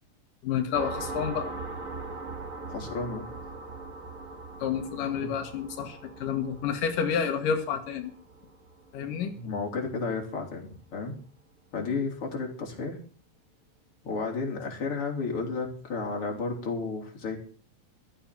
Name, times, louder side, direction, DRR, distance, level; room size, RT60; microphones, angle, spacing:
voice 1, 0.4-1.5 4.6-8.1 8.9-9.3, left 7 dB, 90° left, 5 dB, 3.1 m, -29 dB
sound 1, 0.7-10.0, right 3 dB, 30° right, 1.9 m, -41 dB
voice 2, 2.7-3.3 5.2-5.3 9.3-11.1 11.7-13.0 14.0-17.4, left 4 dB, 45° left, 0 dB, 4.5 m, -32 dB
15.0 x 13.0 x 6.1 m, 0.42 s
omnidirectional pair, 3.7 m